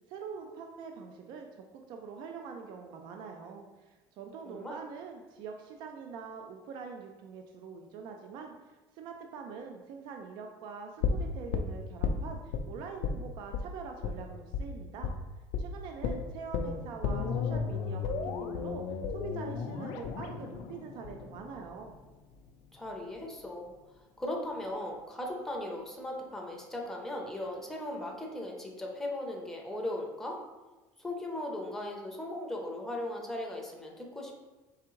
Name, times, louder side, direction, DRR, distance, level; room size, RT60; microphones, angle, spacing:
voice 1, 0.1-15.1 15.6-21.9, right 5 dB, 55° right, 3 dB, 0.4 m, -44 dB
voice 2, 4.5-4.8 22.7-23.7 24.2-30.4 31.0-34.5, left 1 dB, 5° left, 0 dB, 0.6 m, -38 dB
sound 1, 11.0-12.6 13.0-13.2 13.5-13.7 14.0-14.2 14.5-14.7 15.0-15.2 15.5-15.7 16.0-22.0 22.3-22.4, left 6 dB, 70° left, 0.4 m, -34 dB
4.7 x 3.4 x 3.0 m, 1.2 s
cardioid pair, 150°, 9 cm